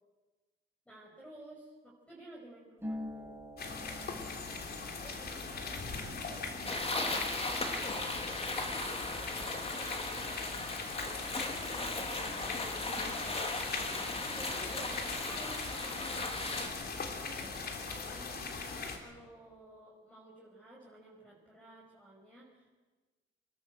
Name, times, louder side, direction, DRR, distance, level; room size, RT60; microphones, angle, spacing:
voice 1, 0.9-3.4 4.8-6.5 6.9-9.3 10.0-12.3 12.8-13.2 14.3-16.5 17.1-22.8, right 1 dB, 5° left, -4 dB, 5.7 m, -53 dB
Harp, 2.8-10.3 10.5-11.7 11.9-12.6, left 1 dB, 10° right, 4.9 m, -49 dB
sound 1, 3.6-19.0, left 4 dB, 50° left, 3.2 m, -40 dB
sound 2, 6.6-16.7, left 2 dB, 30° left, 3.0 m, -37 dB
26.5 x 12.5 x 8.0 m, 1.3 s
cardioid pair, 90°, 20 cm